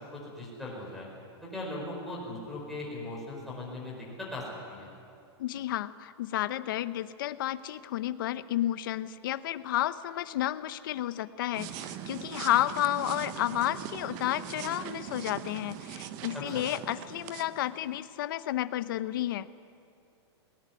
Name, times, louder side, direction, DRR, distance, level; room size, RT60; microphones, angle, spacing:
voice 1, 0.1-1.1 1.4-4.9 16.3-16.6, left 2 dB, ahead, -6 dB, 4.8 m, -39 dB
voice 2, 5.4-19.5, left 13 dB, 50° left, 14 dB, 0.7 m, -31 dB
sound 1, 11.5-18.0, right 10 dB, 25° right, 0.7 m, -41 dB
19.5 x 18.5 x 9.4 m, 2.6 s
supercardioid pair, 175°, 15 cm